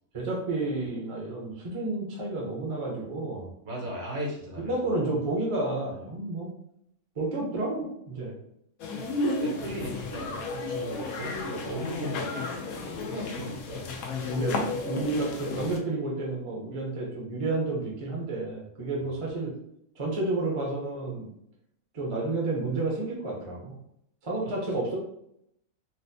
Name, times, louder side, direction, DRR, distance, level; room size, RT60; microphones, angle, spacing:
voice 1, 0.1-3.5 4.6-6.5 7.2-8.3 14.3-14.6 14.9-19.5 20.0-21.3 21.9-23.8 24.2-25.0, right 2 dB, 30° right, -3 dB, 0.7 m, -30 dB
voice 2, 3.6-4.7 9.2-10.5 10.7-12.3 13.0-14.0 19.0-19.1, equal, 55° right, -2 dB, 1.2 m, -37 dB
sound 1, 8.8-15.8, left 3 dB, 90° left, 1.1 m, -33 dB
4.2 x 2.0 x 2.6 m, 0.73 s
omnidirectional pair, 1.4 m